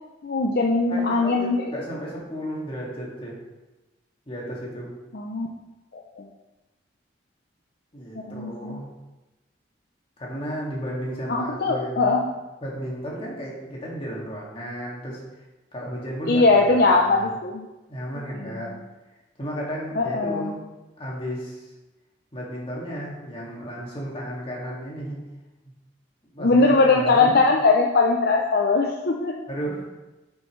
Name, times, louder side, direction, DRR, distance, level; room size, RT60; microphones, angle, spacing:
voice 1, 0.2-1.6 5.1-5.5 5.9-6.2 8.3-8.8 11.3-12.2 16.3-17.7 18.4-18.5 20.0-20.6 26.4-29.3, left 3 dB, 60° left, 1 dB, 0.6 m, -20 dB
voice 2, 0.9-3.4 4.3-5.0 7.9-8.9 10.2-12.2 12.6-15.2 15.7-17.3 17.9-18.8 19.4-20.6 21.0-21.6 22.3-25.2 26.3-27.4 29.5-30.0, equal, 30° left, -4 dB, 2.2 m, -33 dB
8.7 x 7.0 x 3.2 m, 1.1 s
head